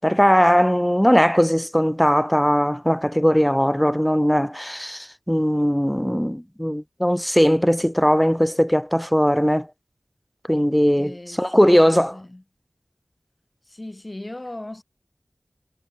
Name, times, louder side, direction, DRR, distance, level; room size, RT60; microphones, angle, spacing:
voice 1, 0.0-9.7 10.5-12.1, equal, 5° left, 1.1 m, -19 dB
voice 2, 11.0-12.4 13.7-14.8, left 1 dB, 30° left, 2.7 m, -38 dB
wide cardioid pair, 60°, 0 cm